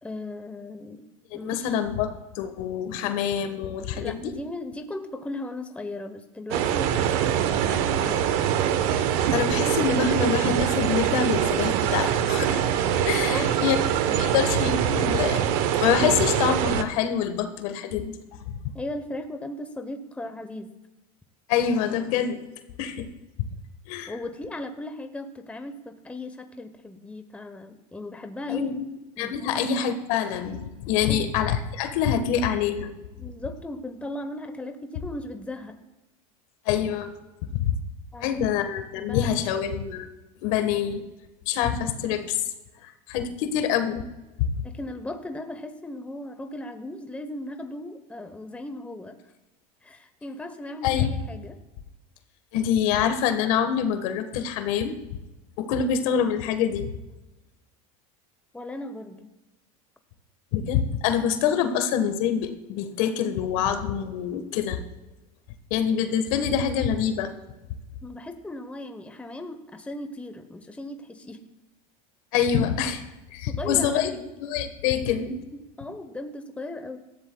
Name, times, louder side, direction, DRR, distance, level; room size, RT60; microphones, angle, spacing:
voice 1, 0.0-1.0 1.3-1.8 3.9-8.4 13.3-14.5 18.7-20.7 24.1-28.7 29.2-29.5 31.1-31.3 33.2-35.8 38.1-38.4 38.9-39.5 44.6-49.2 49.8-51.6 58.5-59.3 68.0-71.4 73.4-74.3 75.5-77.0, left 1 dB, 5° left, 7 dB, 0.9 m, -37 dB
voice 2, 1.3-4.3 9.3-12.6 13.0-13.8 14.1-15.5 15.7-18.2 18.5-18.7 21.5-22.4 22.8-23.1 23.4-23.5 23.9-24.1 28.5-28.9 29.2-32.9 36.6-37.1 37.5-37.8 38.2-40.1 40.4-41.0 41.5-42.4 42.8-44.0 44.4-44.6 50.8-51.1 52.5-55.0 55.6-56.9 60.5-64.8 65.7-67.3 72.3-73.0 73.3-74.1 74.4-75.4, left 8 dB, 65° left, 7 dB, 1.5 m, -25 dB
sound 1, 6.5-16.8, right 9 dB, 65° right, 1.1 m, -24 dB
17.5 x 14.0 x 2.3 m, 1.0 s
supercardioid pair, 110°, 19 cm